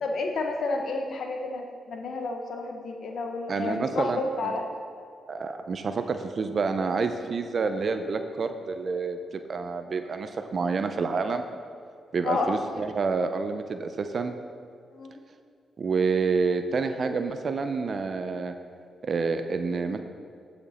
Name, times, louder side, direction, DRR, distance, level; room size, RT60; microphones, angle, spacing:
voice 1, 0.0-4.6 12.2-12.6 14.9-15.1, left 3 dB, 70° left, 3 dB, 0.8 m, -30 dB
voice 2, 3.5-4.5 5.3-11.6 12.1-14.4 15.8-18.5 19.0-20.0, right 4 dB, 55° right, 8 dB, 0.5 m, -28 dB
11.5 x 5.2 x 4.2 m, 2.4 s
supercardioid pair, 55°, 0 cm